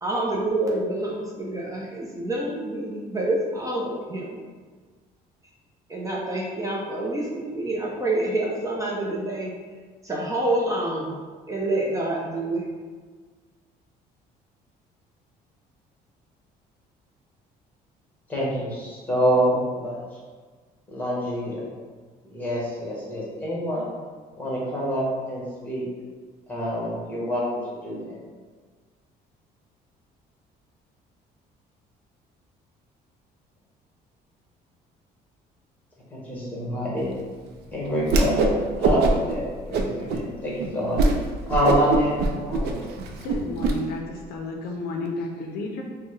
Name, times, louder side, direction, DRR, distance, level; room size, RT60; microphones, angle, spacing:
voice 1, 0.0-4.4 5.9-9.5 10.0-11.2 11.5-12.6, right 2 dB, 20° right, -4 dB, 0.6 m, -27 dB
voice 2, 18.3-20.0 20.9-21.7 22.3-23.9 24.4-25.9 26.5-28.2 36.1-37.1 37.7-39.0 39.3-41.0 41.5-42.8, equal, 10° left, -5 dB, 1.3 m, -26 dB
Whoosh swoosh swish, 38.0-38.5 38.8-39.3 39.7-40.2 40.6-40.7 41.0-41.2 41.5-43.7, right 3 dB, 75° right, 0.4 m, -22 dB
voice 3, 43.2-45.8, left 2 dB, 65° left, 1 dB, 0.5 m, -32 dB
4.1 x 2.1 x 3.2 m, 1.5 s
cardioid pair, 110°, 17 cm